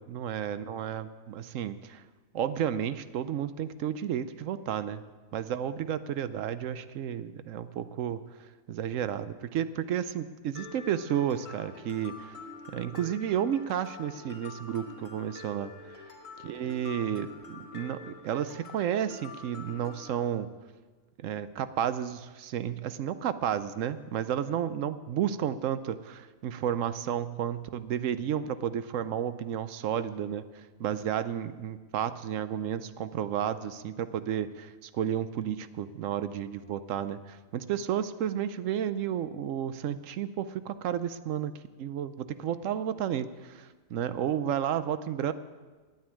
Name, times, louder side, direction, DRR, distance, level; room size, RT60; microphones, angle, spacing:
voice 1, 0.0-2.0 2.3-5.0 5.3-12.3 12.7-16.0 16.4-20.5 21.2-41.5 41.8-45.3, right 9 dB, 75° right, 13 dB, 1.0 m, -32 dB
Mallet percussion, 10.6-20.1, left 4 dB, 70° left, 2.4 m, -46 dB
9.2 x 9.0 x 9.8 m, 1.3 s
omnidirectional pair, 1.4 m